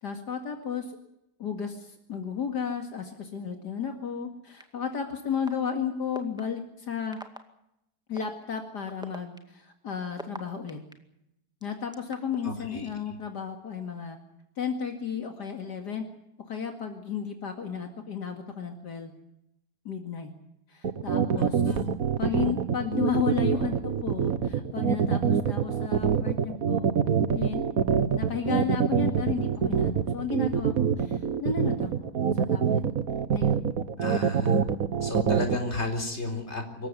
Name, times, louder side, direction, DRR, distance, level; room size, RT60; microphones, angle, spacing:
voice 1, 0.0-0.9 1.4-7.2 8.1-10.8 11.6-14.2 14.6-16.0 16.4-19.1 19.8-20.3 20.7-21.7 22.2-26.9 27.3-27.6 28.1-32.8 33.3-33.7, left 7 dB, 75° left, 4 dB, 2.7 m, -33 dB
sound 1, 4.6-4.7 5.5-5.6 6.1-6.4 7.1-7.4 8.2-8.3 8.9-10.9 11.6-12.4, equal, ahead, 2.0 m, -40 dB
voice 2, 12.4-12.9 21.3-21.9 34.0-34.6 35.0-36.9, left 2 dB, 40° left, 4 dB, 4.4 m, -33 dB
sound 2, 20.8-35.6, right 7 dB, 55° right, 1.6 m, -25 dB
25.5 x 15.0 x 9.5 m, 0.82 s
omnidirectional pair, 1.8 m